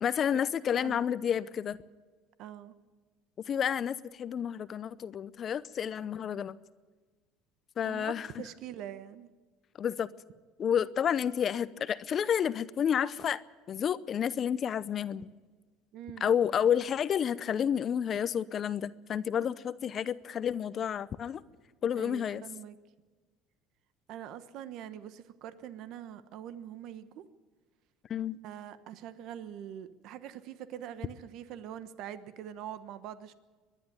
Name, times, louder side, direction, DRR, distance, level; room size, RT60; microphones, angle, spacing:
voice 1, 0.0-1.8 3.5-6.6 7.8-8.3 9.8-10.1 10.6-13.4 13.7-15.3 16.2-21.4 21.8-22.4 28.1-28.4, left 8 dB, 40° left, 0.6 m, -30 dB
voice 2, 2.4-2.7 7.8-9.3 15.9-16.3 21.9-22.8 24.1-27.2 28.4-33.3, right 10 dB, 65° right, 1.1 m, -44 dB
25.0 x 11.0 x 9.5 m
cardioid pair, 120°, 0 cm